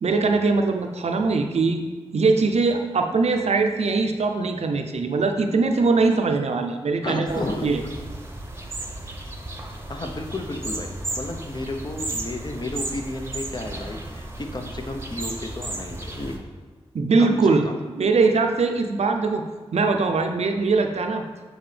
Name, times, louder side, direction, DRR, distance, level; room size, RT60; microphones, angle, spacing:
voice 1, 0.0-1.8 2.1-7.8 16.9-17.7 18.0-19.4 19.7-21.2, right 4 dB, 70° right, 4 dB, 0.5 m, -21 dB
voice 2, 7.0-7.7 9.9-10.9 11.2-16.4 17.2-17.8, left 2 dB, 40° left, 4 dB, 0.7 m, -32 dB
sound 1, 7.3-16.4, right 2 dB, 20° right, 0.9 m, -34 dB
7.9 x 4.0 x 3.3 m, 1.4 s
cardioid pair, 45°, 11 cm